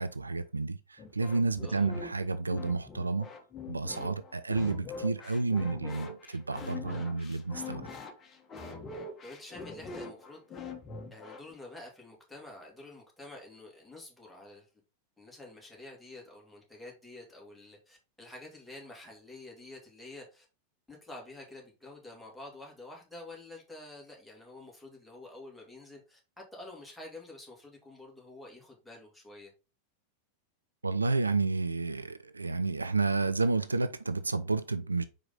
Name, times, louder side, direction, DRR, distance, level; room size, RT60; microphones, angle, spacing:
voice 1, 0.0-3.3 3.7-7.9 30.8-35.0, right 3 dB, 80° right, 0.4 m, -30 dB
sound 1, 1.0-11.5, left 3 dB, 25° left, 1.3 m, -43 dB
voice 2, 9.2-10.6 11.1-14.7 15.2-20.5 20.9-26.2 26.5-29.5, left 2 dB, ahead, 2.5 m, -48 dB
5.5 x 4.8 x 3.8 m
figure-of-eight pair, 90°, 0 cm